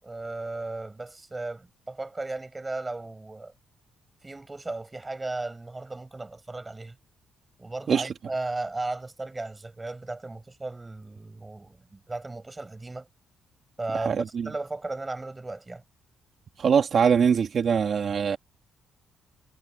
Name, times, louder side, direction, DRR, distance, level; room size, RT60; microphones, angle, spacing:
voice 1, 0.0-3.5 4.2-7.0 7.6-13.1 13.8-15.8, right 2 dB, 20° right, 7.1 m, -35 dB
voice 2, 13.9-14.5 16.6-18.4, right 7 dB, 50° right, 2.9 m, -23 dB
cardioid pair, 90°, 0 cm